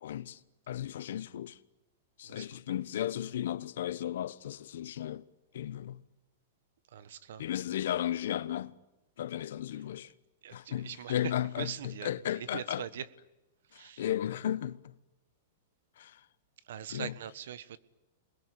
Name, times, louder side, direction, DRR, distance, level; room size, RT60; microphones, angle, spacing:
voice 1, 0.0-0.4 0.7-1.6 2.2-5.3 5.5-6.0 7.4-8.8 9.2-10.1 10.5-12.8 13.7-14.8 16.0-16.2 16.9-17.1, left 11 dB, 75° left, 1.1 m, -35 dB
voice 2, 2.2-2.6 6.9-7.4 10.4-11.2 11.6-13.1 13.7-14.0 16.7-17.8, right 9 dB, 75° right, 1.4 m, -42 dB
28.0 x 21.5 x 9.9 m
hypercardioid pair, 130°, 0 cm